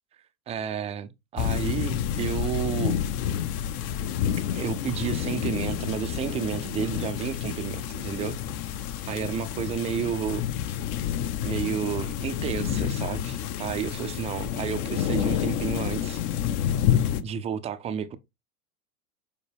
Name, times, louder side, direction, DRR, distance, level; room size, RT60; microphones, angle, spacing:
voice 1, 0.5-3.0 4.5-8.8 9.1-10.4 11.4-16.2 16.5-16.6 17.2-18.2, right 8 dB, 15° right, 0.4 m, -31 dB
sound 1, 1.4-17.2, left 10 dB, 45° left, 0.8 m, -29 dB
7.2 x 4.4 x 3.3 m
hypercardioid pair, 115°, 45 cm